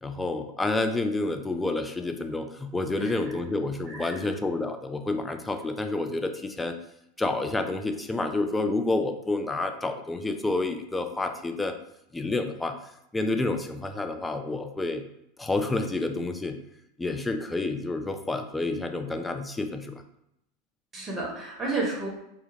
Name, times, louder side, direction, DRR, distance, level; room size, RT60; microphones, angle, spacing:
voice 1, 0.0-6.8 7.2-11.7 12.1-12.8 13.1-15.0 15.4-16.6 17.0-20.0, left 2 dB, 10° left, 6 dB, 0.3 m, -29 dB
voice 2, 20.9-22.1, right 2 dB, 20° right, -2 dB, 1.0 m, -31 dB
2.2 x 2.1 x 3.1 m, 0.80 s
hypercardioid pair, 85°, 0 cm